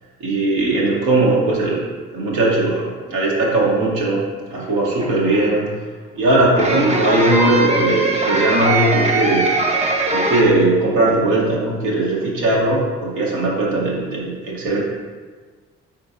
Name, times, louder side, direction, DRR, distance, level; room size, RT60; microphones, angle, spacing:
voice 1, 0.2-1.9 2.1-5.7 6.1-9.5 10.1-14.8, right 2 dB, 80° right, -4 dB, 1.1 m, -19 dB
sound 1, 4.6-5.5 6.6-10.4, right 2 dB, 20° right, 0.6 m, -21 dB
4.1 x 3.9 x 2.5 m, 1.4 s
hypercardioid pair, 50°, 35 cm